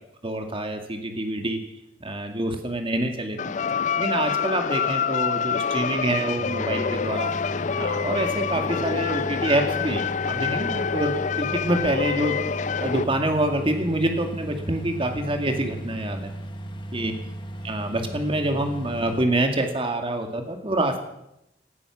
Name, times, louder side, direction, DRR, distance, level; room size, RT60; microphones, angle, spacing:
voice 1, 0.2-1.6 2.0-3.5 4.0-7.3 7.7-12.4 12.8-16.3 16.9-17.2 17.6-21.0, right 1 dB, 30° right, 5 dB, 2.1 m, -26 dB
sound 1, 3.4-13.1, left 6 dB, 45° left, 0.5 m, -27 dB
sound 2, 6.4-19.3, right 1 dB, 30° left, 1.7 m, -36 dB
18.0 x 13.0 x 6.1 m, 0.86 s
head